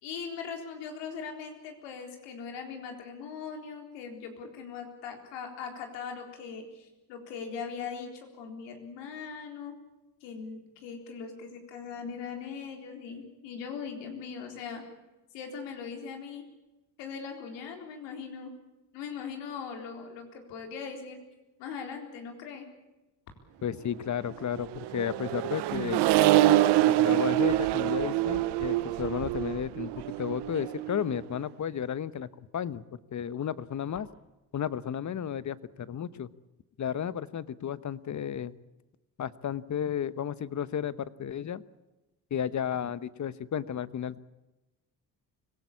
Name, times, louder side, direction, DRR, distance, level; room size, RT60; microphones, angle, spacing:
voice 1, 0.0-9.7 10.2-14.8 15.3-16.4 17.0-18.5 18.9-21.2 21.6-22.7, left 6 dB, 80° left, 4 dB, 4.0 m, -40 dB
voice 2, 23.6-26.0 26.9-32.3 32.5-32.8 33.1-34.1 34.5-36.3 36.8-38.5 39.2-41.6 42.3-44.2, left 8 dB, 45° left, 16 dB, 1.1 m, -33 dB
Accelerating revving vroom, 24.5-31.2, right 15 dB, 70° right, 0.8 m, -26 dB
24.5 x 17.5 x 8.5 m, 1.0 s
supercardioid pair, 65°, 42 cm